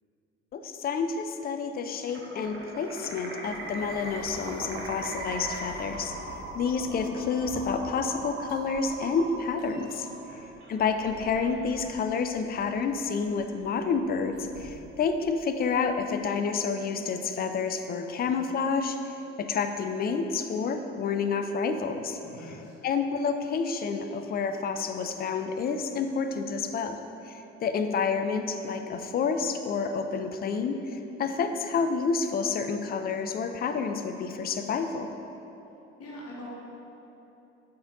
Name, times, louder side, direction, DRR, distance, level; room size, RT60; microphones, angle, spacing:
voice 1, 0.5-6.1 6.5-10.1 10.7-19.0 19.4-22.2 22.8-27.0 27.3-35.1, left 5 dB, 30° left, 7 dB, 0.4 m, -29 dB
sound 1, 2.1-10.5, right 2 dB, 40° right, 1.1 m, -39 dB
sound 2, 2.2-16.1, equal, 75° right, 1.1 m, -49 dB
voice 2, 10.1-10.5 22.2-22.8 36.0-36.5, left 1 dB, 45° left, -4 dB, 1.2 m, -44 dB
7.7 x 5.0 x 2.6 m, 3.0 s
figure-of-eight pair, 50°, 34 cm